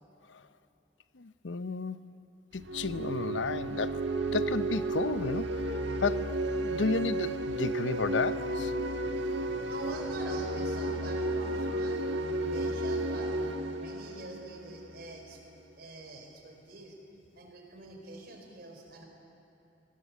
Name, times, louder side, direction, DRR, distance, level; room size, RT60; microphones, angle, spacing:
voice 1, 1.1-2.1 2.5-5.6 6.0-6.3 6.6-8.7, left 4 dB, 85° left, 13 dB, 0.7 m, -32 dB
sound 1, 2.5-15.2, right 1 dB, 75° right, 1.4 m, -33 dB
voice 2, 9.7-13.3 13.8-15.4 15.8-17.0 17.3-19.1, right 2 dB, 60° right, 2 dB, 4.7 m, -45 dB
25.5 x 19.0 x 8.4 m, 3.0 s
head